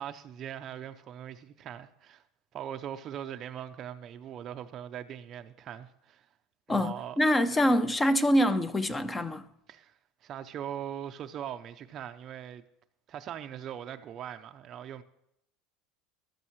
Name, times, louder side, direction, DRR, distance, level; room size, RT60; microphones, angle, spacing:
voice 1, 0.0-2.2 2.5-6.3 6.7-7.2 7.5-7.7 9.7-10.0 10.2-12.6 13.1-15.0, right 10 dB, 30° right, 0.5 m, -41 dB
voice 2, 6.7-9.5, equal, 10° left, 0.6 m, -25 dB
14.0 x 13.0 x 3.1 m
cardioid pair, 165°, 0 cm